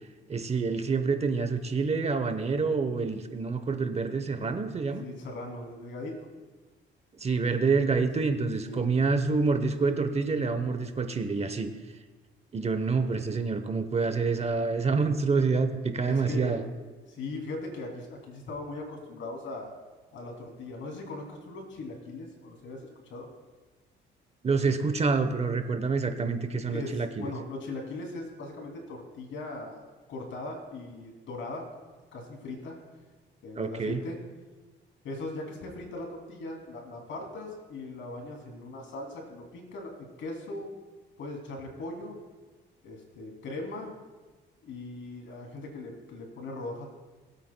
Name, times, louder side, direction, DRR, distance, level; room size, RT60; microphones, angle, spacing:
voice 1, 0.3-5.0 7.2-11.7 12.5-16.6 24.4-27.3 33.6-34.0, right 4 dB, 30° right, 9 dB, 0.9 m, -27 dB
voice 2, 5.0-6.1 7.9-8.3 8.6-8.9 16.0-16.7 17.1-19.7 20.1-23.3 26.7-31.7 32.1-32.8 33.4-34.2 35.0-40.7 41.2-42.1 42.8-43.9 44.6-46.9, left 2 dB, 75° left, 1 dB, 2.9 m, -39 dB
21.0 x 8.4 x 2.2 m, 1.3 s
cardioid pair, 90°, 20 cm